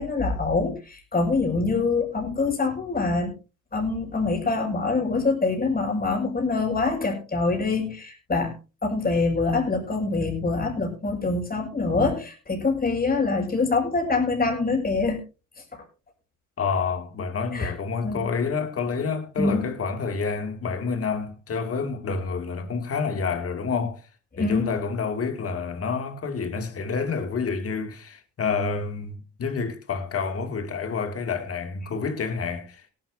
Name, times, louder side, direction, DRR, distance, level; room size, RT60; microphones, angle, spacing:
voice 1, 0.0-3.3 3.7-8.5 8.8-15.2 15.7-15.8 17.5-17.7 18.0-18.3 19.4-19.7 24.4-24.7, left 3 dB, 30° left, 6.1 m, -25 dB
voice 2, 16.6-24.0 24.4-32.8, left 5 dB, 50° left, 2.5 m, -28 dB
18.5 x 12.0 x 2.7 m
cardioid pair, 90°, 30 cm